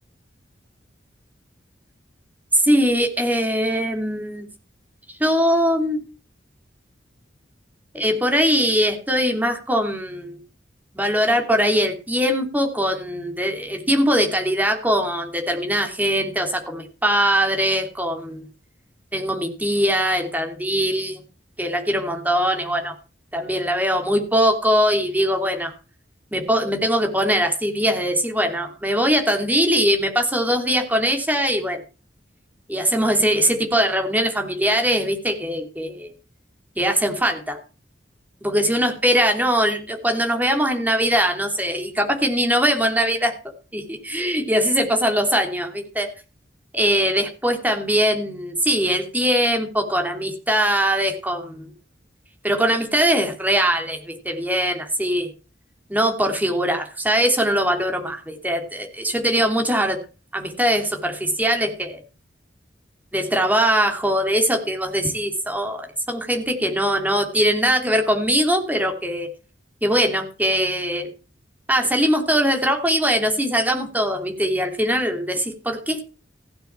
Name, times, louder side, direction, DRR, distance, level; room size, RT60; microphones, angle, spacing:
voice 1, 2.5-4.5 5.2-6.0 7.9-10.4 10.9-18.5 19.1-21.2 21.6-22.9 23.3-25.7 26.3-31.8 32.7-36.1 36.8-37.6 38.4-43.3 43.7-46.1 46.7-51.7 52.4-55.3 55.9-60.0 60.3-62.0 63.1-69.3 69.8-71.1 71.7-76.0, equal, 10° right, 3 dB, 3.0 m, -21 dB
16.0 x 7.0 x 7.4 m, 0.34 s
head